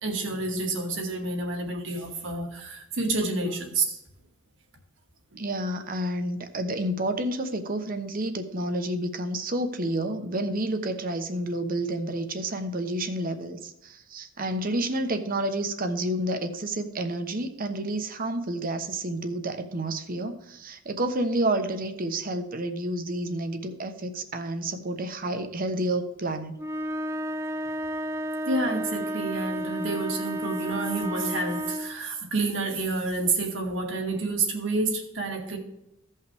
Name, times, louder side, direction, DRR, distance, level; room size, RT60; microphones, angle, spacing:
voice 1, 0.0-4.0 5.3-5.4 28.5-35.6, right 3 dB, 70° right, 2 dB, 2.1 m, -29 dB
voice 2, 5.4-26.6, right 1 dB, 45° right, 8 dB, 1.0 m, -30 dB
sound 1, 26.6-32.0, equal, 15° right, 0.6 m, -32 dB
16.0 x 5.6 x 3.5 m, 0.87 s
head